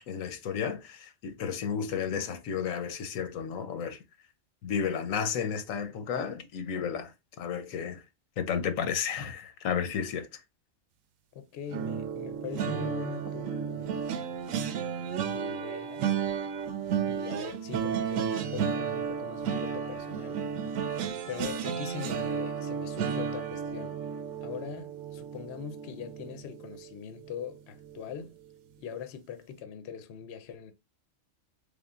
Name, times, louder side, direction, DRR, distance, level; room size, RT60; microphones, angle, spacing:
voice 1, 0.0-4.0 4.6-8.0 8.4-10.3, left 7 dB, 90° left, 1.1 m, -32 dB
voice 2, 11.3-14.0 15.3-16.1 17.1-20.7 21.3-24.0 24.4-28.4 28.8-30.7, left 7 dB, 65° left, 0.8 m, -41 dB
sound 1, 11.7-26.9 27.3-27.5 27.8-28.0, right 7 dB, 80° right, 1.0 m, -33 dB
3.7 x 3.7 x 2.3 m
omnidirectional pair, 1.4 m